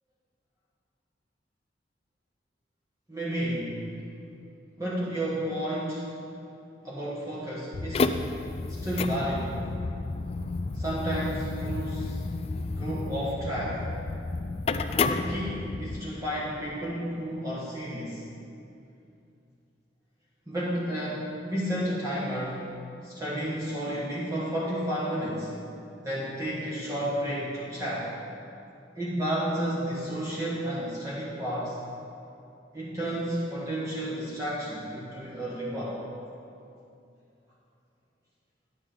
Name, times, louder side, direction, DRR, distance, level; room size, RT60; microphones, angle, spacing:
voice 1, 3.1-3.8 4.8-6.1 6.8-8.2 8.7-9.5 10.7-12.2 12.8-13.8 15.1-18.2 20.5-22.7 23.0-25.5 26.0-28.1 28.9-31.8 32.7-36.0, right 1 dB, 20° right, -8 dB, 1.4 m, -31 dB
sound 1, 7.7-16.0, left 3 dB, 35° left, 0.3 m, -31 dB
10.5 x 9.1 x 3.8 m, 2.6 s
head